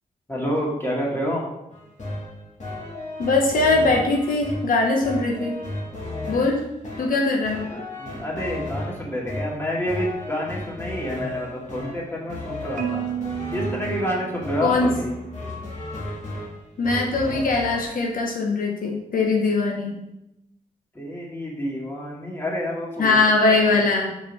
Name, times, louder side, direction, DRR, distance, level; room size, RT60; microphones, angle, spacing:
voice 1, 0.3-1.4 7.7-13.0 13.5-15.1 20.9-23.2 23.7-23.8, equal, 15° left, -4 dB, 2.3 m, -28 dB
sound 1, 1.7-17.8, left 1 dB, 55° left, 2.3 m, -34 dB
voice 2, 3.2-5.6 6.3-6.7 7.0-7.7 14.6-14.9 16.8-20.0 23.0-24.1, left 3 dB, 85° left, 0 dB, 1.1 m, -21 dB
Marimba xylophone, 12.8-15.0, right 11 dB, 65° right, 0.4 m, -32 dB
5.4 x 5.3 x 5.4 m, 0.87 s
wide cardioid pair, 100°, 14 cm